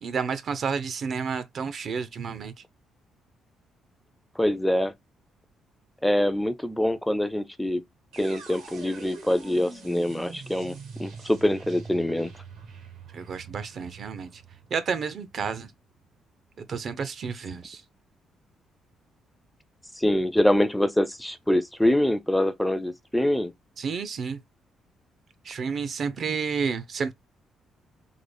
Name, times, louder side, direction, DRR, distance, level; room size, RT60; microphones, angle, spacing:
voice 1, 0.0-2.5 13.1-14.4 14.7-15.7 16.6-17.8 23.8-24.4 25.4-27.1, right 6 dB, 55° right, 0.6 m, -30 dB
voice 2, 4.4-4.9 6.0-7.8 8.2-12.3 20.0-23.5, left 1 dB, 5° left, 0.4 m, -24 dB
sound 1, 8.1-16.1, right 4 dB, 80° right, 1.3 m, -44 dB
3.7 x 2.0 x 3.3 m
cardioid pair, 90°, 0 cm